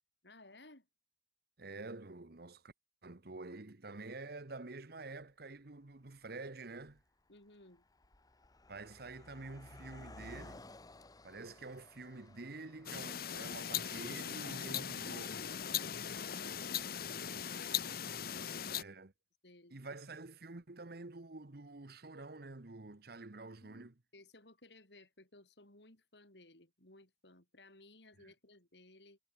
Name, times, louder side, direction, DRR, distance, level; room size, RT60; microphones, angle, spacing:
voice 1, 0.2-0.9 7.3-7.8 16.0-18.1 18.4-18.9 19.4-19.8 23.6-29.2, left 2 dB, 75° left, 7.2 m, -60 dB
voice 2, 1.6-2.7 3.0-7.0 8.7-10.7 11.2-15.5 18.7-19.1 19.7-23.9 28.2-28.3, right 3 dB, 60° right, 1.2 m, -48 dB
Car passing by, 5.2-5.3 6.1-6.3 6.6-17.0, left 2 dB, 20° left, 1.1 m, -58 dB
sound 1, 12.9-18.8, left 9 dB, 60° left, 1.0 m, -39 dB
head